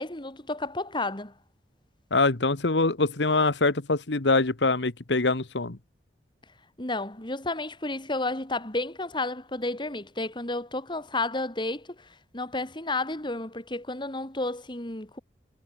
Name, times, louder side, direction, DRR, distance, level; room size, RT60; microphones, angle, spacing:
voice 1, 0.0-1.3 6.8-15.2, left 2 dB, 25° left, 3.6 m, -32 dB
voice 2, 2.1-5.8, left 3 dB, 80° left, 1.4 m, -24 dB
head